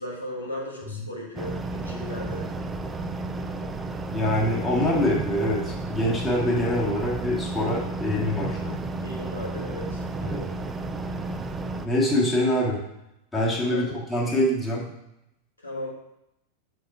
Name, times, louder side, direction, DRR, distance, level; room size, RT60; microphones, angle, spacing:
voice 1, 0.0-2.5 9.0-10.6 13.7-14.0 15.6-15.9, left 1 dB, 80° left, -2 dB, 1.4 m, -36 dB
sound 1, 1.4-11.9, right 2 dB, 15° right, 0.4 m, -32 dB
voice 2, 4.1-8.8 10.2-10.4 11.8-12.9 13.3-14.9, left 1 dB, 10° left, -5 dB, 1.7 m, -25 dB
4.8 x 4.4 x 5.5 m, 0.85 s
figure-of-eight pair, 90°, 0 cm